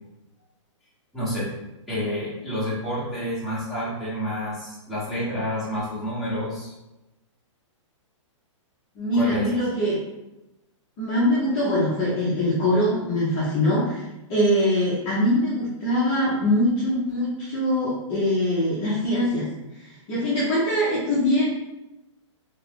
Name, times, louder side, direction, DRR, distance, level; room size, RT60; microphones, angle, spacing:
voice 1, 1.1-1.5 1.9-6.7 9.1-9.5, equal, ahead, -11 dB, 0.9 m, -29 dB
voice 2, 9.0-10.0 11.0-14.0 14.3-19.5 19.8-21.5, left 1 dB, 20° left, -9 dB, 0.6 m, -23 dB
2.8 x 2.3 x 3.5 m, 0.96 s
hypercardioid pair, 165°, 16 cm